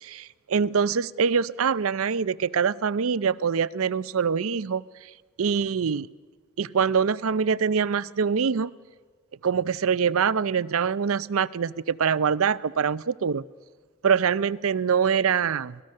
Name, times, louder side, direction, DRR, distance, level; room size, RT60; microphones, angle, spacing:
voice 1, 0.0-4.8 5.4-6.1 6.6-8.7 9.4-13.5 14.0-15.8, right 6 dB, 70° right, 18 dB, 0.5 m, -24 dB
25.0 x 18.0 x 6.5 m, 1.5 s
head